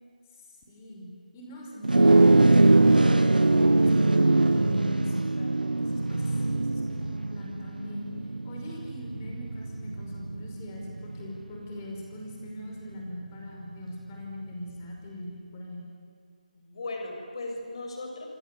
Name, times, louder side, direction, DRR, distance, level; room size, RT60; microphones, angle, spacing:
voice 1, 0.7-1.1 1.3-5.2 5.8-8.1 8.4-15.8, left 1 dB, 20° left, 0 dB, 5.5 m, -41 dB
sound 1, 1.8-11.4, right 2 dB, 85° right, 1.4 m, -22 dB
voice 2, 2.9-3.5 5.3-5.7 16.5-18.3, left 2 dB, 40° left, 2 dB, 7.0 m, -39 dB
27.5 x 25.0 x 8.5 m, 2.3 s
figure-of-eight pair, 165°, 5 cm